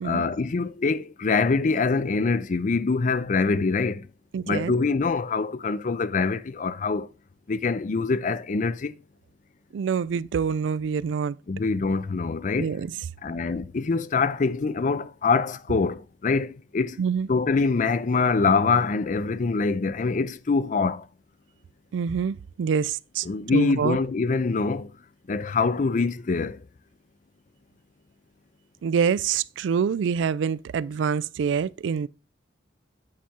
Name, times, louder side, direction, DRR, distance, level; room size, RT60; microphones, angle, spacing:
voice 1, 0.0-4.0 4.5-7.1 7.5-8.9 11.5-12.8 13.2-17.0 17.3-21.0 23.2-24.9 25.3-26.6, left 4 dB, 45° left, 0.4 m, -24 dB
voice 2, 4.3-4.7 9.7-11.4 12.6-12.9 17.0-17.3 21.9-23.3 23.5-24.0 28.8-32.1, right 6 dB, 85° right, 0.3 m, -26 dB
8.8 x 4.2 x 3.6 m
head